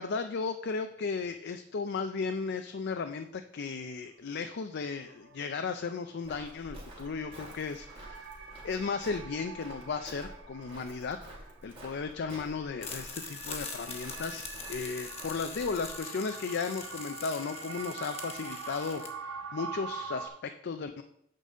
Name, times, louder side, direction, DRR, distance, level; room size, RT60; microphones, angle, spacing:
voice 1, 0.0-8.4 8.6-11.2 11.6-21.0, left 4 dB, 55° left, 7 dB, 0.4 m, -35 dB
sound 1, 1.2-1.3 4.5-4.6 4.9-20.3, right 5 dB, 70° right, 1.0 m, -45 dB
Walk footsteps, 6.2-16.0, right 1 dB, 30° right, 2.5 m, -50 dB
sound 2, 12.8-19.1, left 4 dB, 30° left, 1.2 m, -43 dB
9.1 x 4.0 x 6.2 m, 0.73 s
head